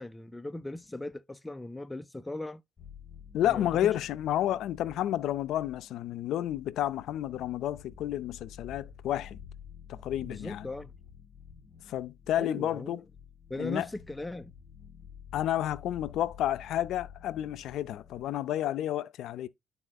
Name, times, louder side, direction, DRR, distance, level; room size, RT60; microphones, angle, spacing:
voice 1, 0.0-2.6 3.4-3.9 10.2-10.9 12.4-13.0 13.5-14.5, left 2 dB, 10° left, 0.4 m, -38 dB
sound 1, 2.8-18.7, left 7 dB, 25° left, 1.6 m, -50 dB
voice 2, 3.3-9.4 9.9-10.7 11.9-13.0 13.6-13.9 15.3-19.5, left 12 dB, 75° left, 0.4 m, -31 dB
11.0 x 4.2 x 2.3 m
cardioid pair, 120°, 0 cm